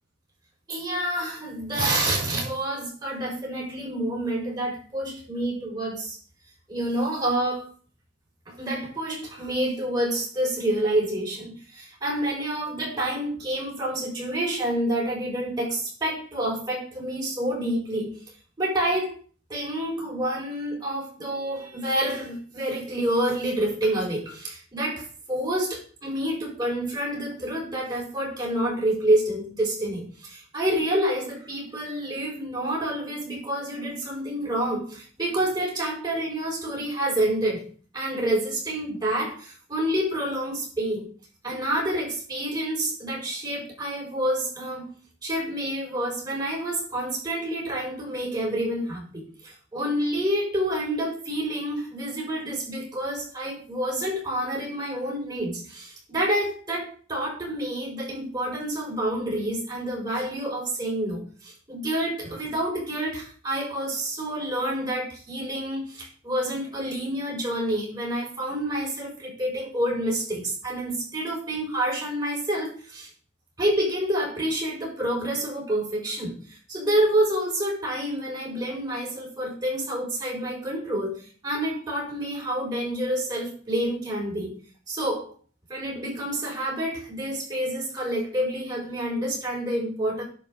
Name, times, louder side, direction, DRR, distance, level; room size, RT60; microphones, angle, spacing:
voice 1, 0.7-6.2 6.7-7.7 8.5-18.2 18.6-19.2 19.5-41.1 41.4-44.9 45.2-73.1 73.6-84.6 84.9-85.3 85.7-90.2, right 1 dB, 20° right, -2 dB, 5.1 m, -28 dB
11.0 x 5.6 x 6.6 m, 0.42 s
head